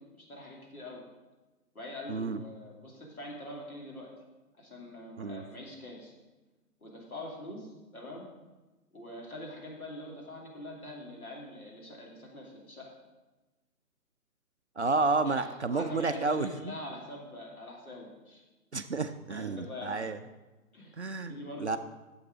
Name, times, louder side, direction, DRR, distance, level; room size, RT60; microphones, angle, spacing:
voice 1, 0.1-1.0 1.7-4.1 4.6-6.1 6.8-8.3 8.9-12.9 15.2-15.5 15.7-18.4 19.3-20.0 20.7-21.8, left 1 dB, 65° left, -2 dB, 3.0 m, -44 dB
voice 2, 2.1-2.4 5.2-5.4 14.8-16.8 18.7-20.2 21.0-21.8, right 3 dB, 50° right, 9 dB, 0.5 m, -31 dB
9.5 x 7.2 x 5.1 m, 1.1 s
figure-of-eight pair, 150°, 46 cm